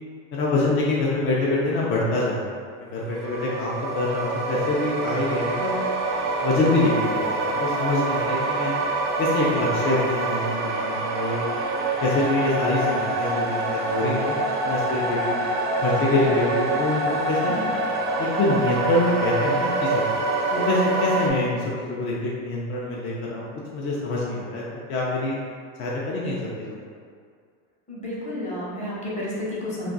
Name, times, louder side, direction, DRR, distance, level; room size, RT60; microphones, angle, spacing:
voice 1, 0.3-5.8 6.4-8.7 9.2-11.5 12.0-14.3 14.6-15.4 15.8-17.5 18.2-20.1 20.5-24.6 24.9-25.4 25.8-26.8, left 2 dB, 35° left, -5 dB, 0.5 m, -25 dB
sound 1, 3.1-21.3, right 2 dB, 50° right, 0.5 m, -26 dB
voice 2, 27.9-29.9, left 1 dB, 20° left, -7 dB, 0.9 m, -31 dB
2.4 x 2.3 x 3.8 m, 2.1 s
supercardioid pair, 120°, 37 cm